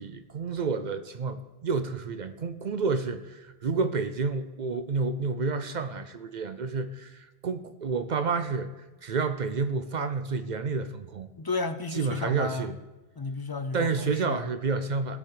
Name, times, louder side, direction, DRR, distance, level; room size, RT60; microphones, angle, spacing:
voice 1, 0.0-11.3 11.9-12.8 13.7-15.2, right 4 dB, 50° right, 11 dB, 0.6 m, -30 dB
voice 2, 11.4-12.7 13.2-14.5, left 3 dB, 35° left, 9 dB, 0.3 m, -33 dB
17.5 x 7.0 x 4.8 m, 1.1 s
omnidirectional pair, 1.1 m